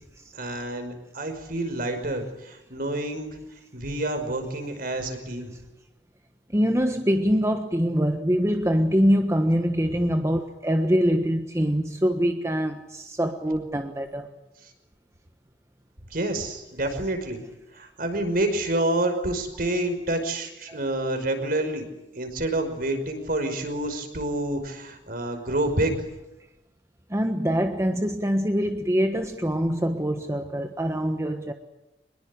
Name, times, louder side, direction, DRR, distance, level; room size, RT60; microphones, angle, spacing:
voice 1, 0.3-3.4 3.7-5.5 9.9-10.0 16.1-17.4 17.7-21.9 22.1-26.0, right 1 dB, 55° right, 5.6 m, -28 dB
voice 2, 6.5-14.3 20.7-20.8 27.1-31.5, equal, 15° right, 1.3 m, -24 dB
25.0 x 21.5 x 9.9 m
head